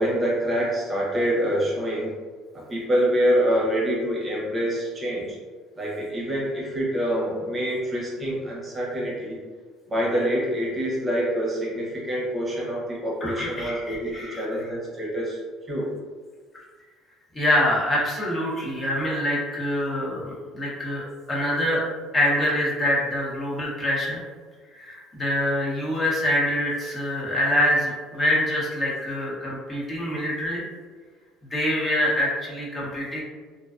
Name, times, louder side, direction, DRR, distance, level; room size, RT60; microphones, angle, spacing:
voice 1, 0.0-2.1 2.5-5.4 5.8-9.4 9.9-15.4 15.7-15.9, equal, 25° right, -4 dB, 0.7 m, -26 dB
voice 2, 13.2-14.4 17.3-21.8 22.1-24.2 24.7-30.6 31.5-33.2, left 1 dB, 25° left, -6 dB, 0.8 m, -25 dB
2.4 x 2.2 x 2.4 m, 1.5 s
supercardioid pair, 100°, 0 cm